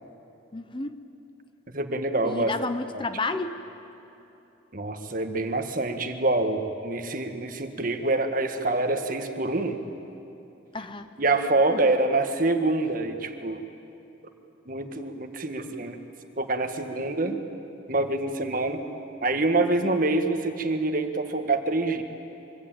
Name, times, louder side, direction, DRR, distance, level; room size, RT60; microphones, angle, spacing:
voice 1, 0.5-0.9 2.2-3.6 10.7-11.1, left 3 dB, 25° left, 10 dB, 0.8 m, -31 dB
voice 2, 1.7-2.5 4.7-9.8 11.2-13.6 14.7-16.0 16.4-17.4 17.9-18.8 19.2-22.0, right 2 dB, 45° right, 6 dB, 1.7 m, -26 dB
24.5 x 24.5 x 9.0 m, 3.0 s
head